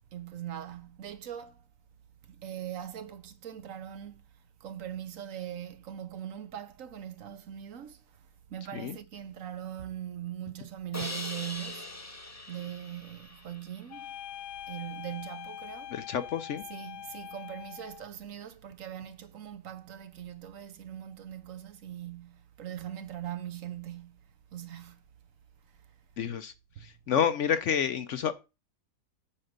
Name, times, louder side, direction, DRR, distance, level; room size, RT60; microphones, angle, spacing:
voice 1, 0.1-1.6 2.2-4.2 4.6-8.2 8.5-12.0 12.5-14.2 14.7-16.0 16.7-24.2 24.5-25.0 26.8-26.9, right 10 dB, 60° right, 1.1 m, -41 dB
Crash cymbal, 10.9-14.0, left 2 dB, 15° left, 0.7 m, -41 dB
sound 1, 13.9-18.1, left 11 dB, 90° left, 1.2 m, -43 dB
voice 2, 15.9-16.6 26.2-26.5 26.8-28.3, left 8 dB, 65° left, 0.8 m, -29 dB
8.6 x 3.7 x 6.6 m
omnidirectional pair, 1.7 m